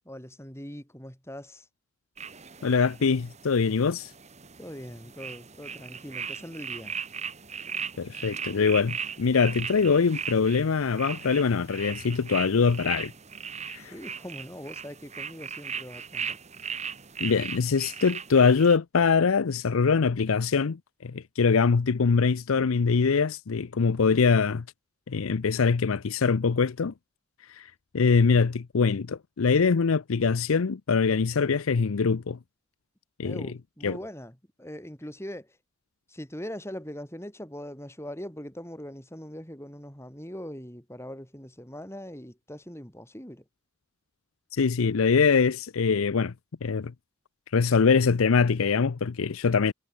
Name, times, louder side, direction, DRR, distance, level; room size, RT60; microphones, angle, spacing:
voice 1, 0.0-1.7 4.6-6.9 13.8-16.4 33.2-35.5 36.1-43.4, equal, 10° left, 7.9 m, -41 dB
sound 1, 2.2-18.8, right 6 dB, 30° right, 2.9 m, -38 dB
voice 2, 2.6-4.1 8.0-13.1 13.7-13.9 17.2-24.6 25.1-26.9 27.6-27.7 27.9-32.4 33.2-33.5 33.8-34.0 44.5-46.3 46.6-46.9 47.5-49.7, left 5 dB, 80° left, 0.6 m, -23 dB
head